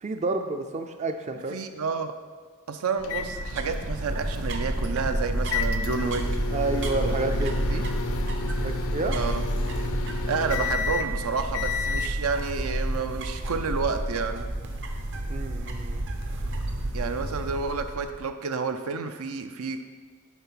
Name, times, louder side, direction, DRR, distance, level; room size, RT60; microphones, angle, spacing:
voice 1, 0.0-1.6 6.5-7.5 8.6-9.2 15.3-16.0, right 3 dB, 30° right, 6 dB, 0.4 m, -30 dB
voice 2, 1.5-2.2 2.7-6.3 7.0-7.4 7.7-7.9 9.0-9.5 10.3-14.5 16.9-19.8, right 5 dB, 80° right, 8 dB, 0.6 m, -30 dB
sound 1, 3.0-12.1, left 5 dB, 70° left, 0.5 m, -33 dB
sound 2, 3.0-18.2, right 1 dB, 60° right, 0.8 m, -30 dB
10.5 x 3.4 x 5.7 m, 1.5 s
head